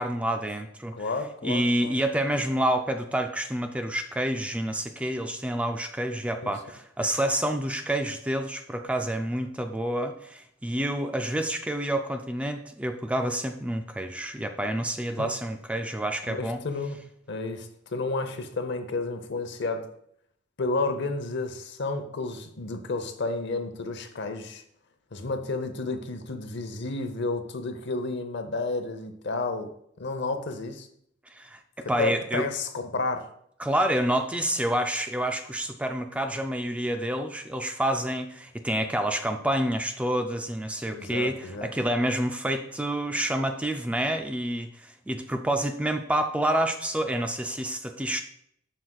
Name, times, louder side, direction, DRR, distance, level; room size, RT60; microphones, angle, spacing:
voice 1, 0.0-1.0 1.4-16.6 31.3-32.5 33.6-48.2, right 1 dB, 5° right, 5 dB, 0.4 m, -28 dB
voice 2, 0.9-1.9 6.4-6.5 15.2-15.3 16.3-17.0 17.3-19.9 20.6-24.6 25.1-29.7 30.0-30.9 31.8-33.3 40.9-41.7, left 3 dB, 60° left, 7 dB, 0.8 m, -31 dB
9.6 x 6.4 x 2.3 m, 0.71 s
head